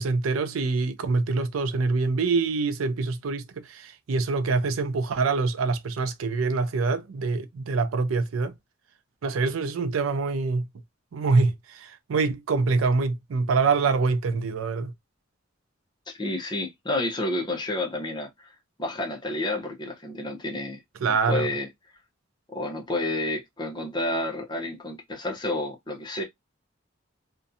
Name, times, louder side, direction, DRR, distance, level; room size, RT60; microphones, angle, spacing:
voice 1, 0.0-8.5 9.2-10.7 11.1-14.9 21.0-21.5, right 4 dB, 90° right, 0.4 m, -25 dB
voice 2, 16.1-20.8 21.1-21.7 22.5-26.2, left 1 dB, 20° left, 0.6 m, -30 dB
2.6 x 2.2 x 2.5 m
head